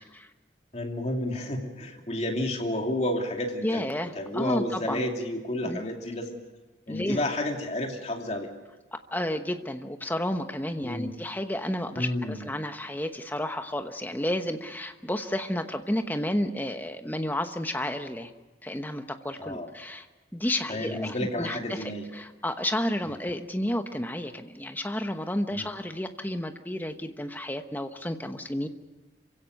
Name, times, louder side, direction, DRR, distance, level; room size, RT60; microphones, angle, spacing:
voice 1, 0.7-3.8 4.1-6.4 6.9-8.5 10.8-11.1 11.9-12.4 19.4-19.7 20.7-22.0 25.5-25.7, left 1 dB, 35° left, 2 dB, 2.8 m, -31 dB
voice 2, 3.6-5.0 5.6-5.8 6.9-7.2 9.1-18.3 18.6-20.1 20.3-28.7, left 1 dB, 10° left, 7 dB, 1.1 m, -31 dB
27.0 x 16.5 x 6.6 m, 1.2 s
head